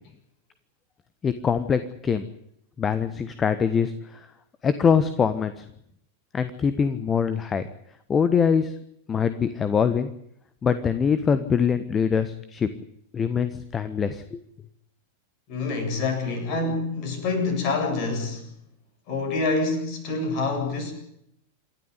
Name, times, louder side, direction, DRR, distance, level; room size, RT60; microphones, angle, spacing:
voice 1, 1.2-2.2 2.8-4.2 4.6-5.6 6.3-7.6 8.1-8.7 9.1-10.1 10.6-12.7 13.1-14.4, left 6 dB, 20° left, 12 dB, 1.3 m, -23 dB
voice 2, 15.5-18.4 19.1-20.9, left 3 dB, 40° left, 4 dB, 8.0 m, -26 dB
28.0 x 12.5 x 9.8 m, 0.75 s
figure-of-eight pair, 90°, 0 cm